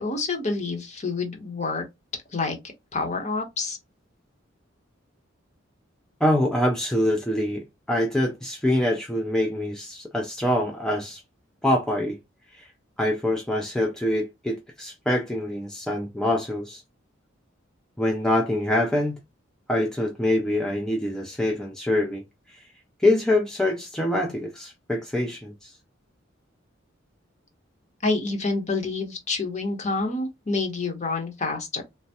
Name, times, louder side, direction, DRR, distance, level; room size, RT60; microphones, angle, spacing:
voice 1, 0.0-1.8 2.3-2.6 2.9-3.8 28.0-31.8, left 3 dB, 35° left, 0.8 m, -28 dB
voice 2, 6.2-11.2 11.6-12.2 12.5-12.7 13.0-16.8 18.0-19.2 19.7-22.2 23.0-25.7, left 1 dB, 5° left, 0.4 m, -25 dB
3.3 x 2.1 x 2.7 m
head